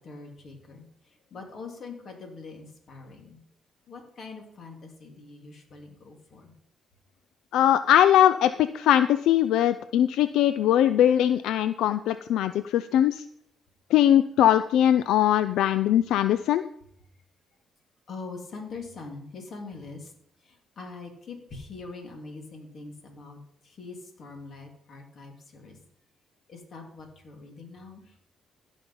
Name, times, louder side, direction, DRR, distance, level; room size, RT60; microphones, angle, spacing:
voice 1, 0.0-3.4 3.9-6.5 18.1-20.1 20.4-25.8 26.5-28.1, left 3 dB, 55° left, 3 dB, 2.7 m, -43 dB
voice 2, 7.5-13.2 13.9-16.6, left 11 dB, 85° left, 12 dB, 0.4 m, -21 dB
15.0 x 5.4 x 5.5 m, 0.71 s
cardioid pair, 90°, 0 cm